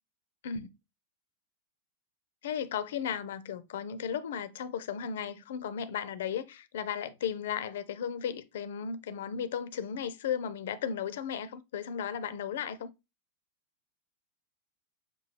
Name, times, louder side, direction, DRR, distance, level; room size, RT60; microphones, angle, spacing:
voice 1, 2.4-12.9, left 8 dB, 60° left, 0.4 m, -35 dB
6.0 x 2.3 x 3.1 m
figure-of-eight pair, 90°, 0 cm